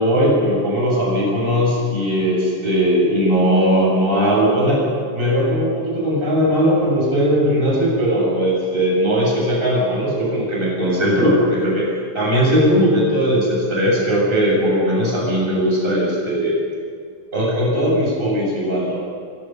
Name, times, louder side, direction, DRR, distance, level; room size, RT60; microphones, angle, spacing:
voice 1, 0.0-4.8 5.1-11.9 12.1-16.5 17.3-19.0, equal, 15° right, -5 dB, 7.8 m, -18 dB
23.5 x 21.5 x 5.6 m, 2.1 s
omnidirectional pair, 4.0 m